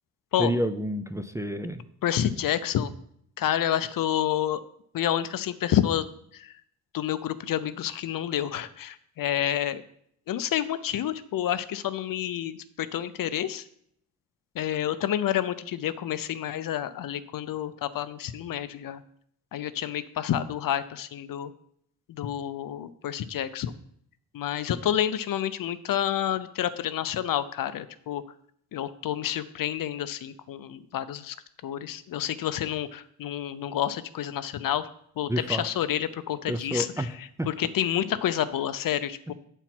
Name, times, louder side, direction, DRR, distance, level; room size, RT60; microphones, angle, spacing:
voice 1, 0.4-1.8 35.3-35.6 36.5-37.1 37.4-37.5, equal, 10° right, 8 dB, 0.5 m, -29 dB
voice 2, 2.0-2.9 3.4-4.6 4.9-6.1 6.3-6.5 6.9-9.8 10.3-13.6 14.5-19.0 19.5-21.5 22.1-23.7 24.3-28.2 28.7-31.4 31.6-34.9 35.2-39.3, left 11 dB, 60° left, 14 dB, 0.6 m, -29 dB
8.1 x 4.4 x 5.9 m, 0.68 s
cardioid pair, 85°, 38 cm